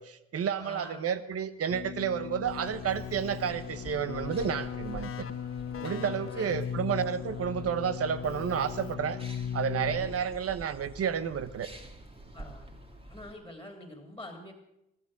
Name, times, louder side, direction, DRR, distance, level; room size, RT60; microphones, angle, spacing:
voice 1, 0.0-5.3 5.8-9.2 9.5-11.7, right 8 dB, 50° right, 13 dB, 1.1 m, -31 dB
voice 2, 0.6-1.1 5.7-6.8 9.9-10.1 12.3-12.8 13.1-14.5, left 1 dB, 5° left, 3 dB, 3.2 m, -46 dB
Keyboard (musical), 1.7-10.4, left 8 dB, 45° left, 0.8 m, -38 dB
sound 1, 2.4-13.3, right 1 dB, 20° right, 2.3 m, -48 dB
15.0 x 13.5 x 6.2 m, 0.84 s
cardioid pair, 90°, 30 cm